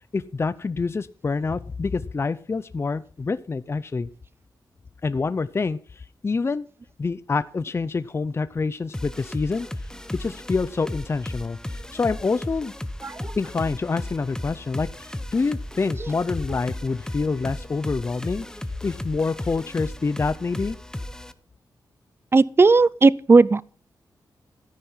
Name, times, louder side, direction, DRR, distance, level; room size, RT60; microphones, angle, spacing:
voice 1, 0.1-4.1 5.0-5.8 6.2-6.7 7.0-9.7 10.1-12.7 13.4-18.4 18.8-20.8, left 4 dB, 35° left, 0.6 m, -26 dB
sound 1, 8.9-21.3, left 1 dB, 10° left, 1.0 m, -35 dB
voice 2, 13.0-13.4 16.0-16.1 16.5-16.6 22.3-23.6, right 3 dB, 30° right, 0.6 m, -17 dB
13.5 x 10.5 x 5.6 m
wide cardioid pair, 100°, 8 cm